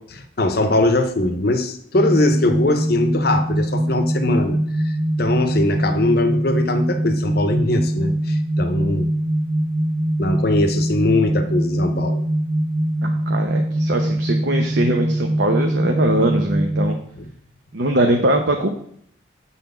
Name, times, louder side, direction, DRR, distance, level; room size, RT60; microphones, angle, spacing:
voice 1, 0.4-4.6 4.8-9.1 10.2-12.2 17.2-17.3, left 2 dB, 50° left, 8 dB, 0.8 m, -21 dB
sound 1, 1.9-16.9, right 1 dB, 90° right, 1.1 m, -22 dB
voice 2, 13.0-17.0 17.7-18.7, right 1 dB, 60° right, 4 dB, 0.8 m, -21 dB
7.4 x 4.1 x 6.7 m, 0.65 s
head